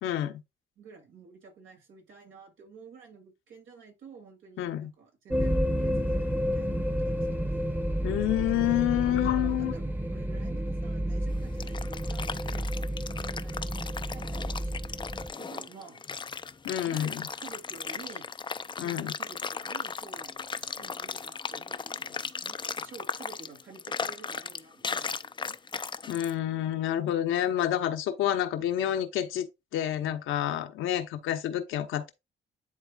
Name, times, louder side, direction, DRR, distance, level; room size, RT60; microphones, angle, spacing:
voice 1, 0.0-0.4 4.6-4.9 8.0-9.7 16.6-17.2 18.8-19.1 26.1-32.1, left 12 dB, 85° left, 1.0 m, -28 dB
voice 2, 0.8-7.7 9.0-12.9 13.2-16.0 16.8-18.3 18.8-25.6 27.0-27.2 28.6-28.7, right 5 dB, 80° right, 2.7 m, -51 dB
sound 1, 5.3-15.3, equal, 10° right, 1.0 m, -30 dB
sound 2, 11.3-26.3, left 5 dB, 25° left, 0.5 m, -37 dB
11.0 x 3.7 x 2.4 m
cardioid pair, 90°, 20 cm